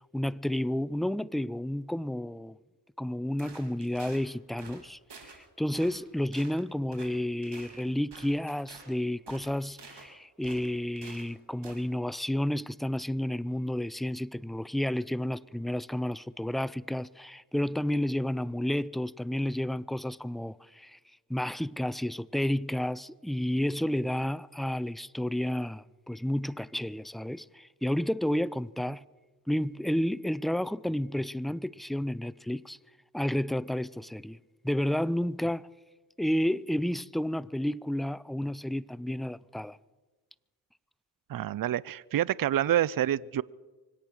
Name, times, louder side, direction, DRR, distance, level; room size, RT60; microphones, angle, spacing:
voice 1, 0.1-2.6 3.0-21.0 21.3-29.0 29.5-32.8 33.1-34.4 34.6-35.7 36.2-39.8, left 1 dB, ahead, 0.4 m, -31 dB
sound 1, 3.4-4.2 4.6-4.8 5.1-5.4 5.7-6.1 6.3-6.6 6.9-7.1 7.4-8.9 9.3-10.1 10.4-11.3 11.6-11.8, right 4 dB, 70° right, 3.4 m, -49 dB
voice 2, 41.3-43.4, right 12 dB, 50° right, 0.5 m, -27 dB
25.0 x 8.8 x 6.2 m
cardioid pair, 45°, 43 cm